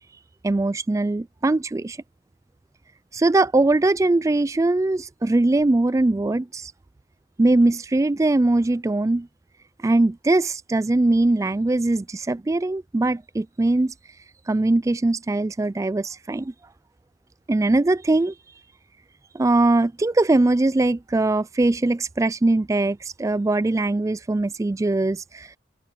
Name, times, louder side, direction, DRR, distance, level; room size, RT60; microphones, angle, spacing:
voice 1, 0.4-2.0 3.1-6.7 7.4-9.3 9.8-13.9 14.5-16.5 17.5-18.3 19.3-25.5, right 2 dB, 15° right, 0.3 m, -21 dB
head